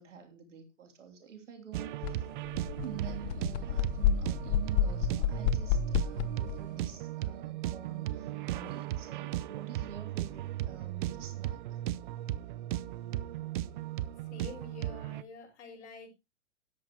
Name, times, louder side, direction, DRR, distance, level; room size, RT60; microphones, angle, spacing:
voice 1, 0.0-2.3 2.8-11.8, right 9 dB, 75° right, 3.3 m, -47 dB
sound 1, 1.7-15.2, right 13 dB, 40° right, 0.7 m, -36 dB
sound 2, 2.0-2.1 2.5-6.6, left 9 dB, 35° left, 0.7 m, -30 dB
voice 2, 14.3-16.1, left 5 dB, 60° left, 6.2 m, -48 dB
13.5 x 10.5 x 3.0 m
hypercardioid pair, 130°, 37 cm